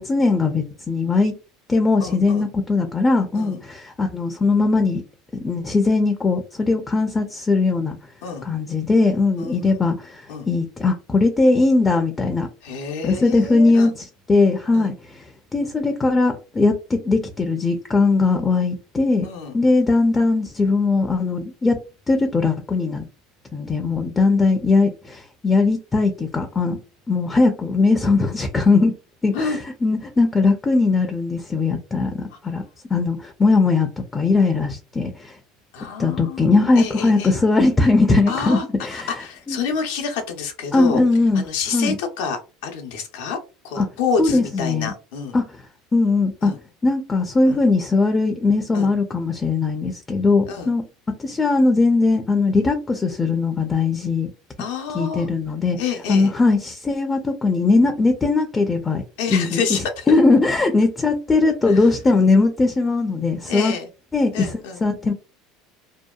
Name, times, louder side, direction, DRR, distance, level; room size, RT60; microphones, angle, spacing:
voice 1, 0.0-1.3 1.7-5.0 5.3-8.0 8.4-12.5 13.0-13.9 14.3-15.2 15.5-19.3 19.5-21.8 22.1-23.1 23.5-26.8 27.1-28.9 29.2-32.6 32.9-35.3 36.0-39.1 39.5-39.6 40.7-41.4 41.7-41.9 43.8-43.9 44.2-44.9 45.3-45.4 45.9-46.5 46.8-50.8 51.2-54.3 54.9-55.8 56.1-59.0 59.3-59.6 60.1-63.7 64.1-64.5 64.8-65.1, left 3 dB, 20° left, 5 dB, 0.4 m, -19 dB
voice 2, 2.0-2.5 3.3-3.6 8.2-8.5 9.4-9.8 10.3-10.5 12.6-14.0 14.7-14.9 19.2-19.5 29.3-29.6 32.3-32.4 35.7-37.3 38.3-38.6 38.9-41.0 41.3-43.4 43.6-45.4 46.4-46.6 47.5-47.6 48.7-48.9 50.5-50.7 54.6-55.3 55.8-56.3 59.2-60.2 61.7-61.9 63.5-63.9 64.3-64.8, left 5 dB, 80° left, 4 dB, 0.6 m, -28 dB
2.7 x 2.2 x 2.2 m, 0.33 s
supercardioid pair, 100°, 0 cm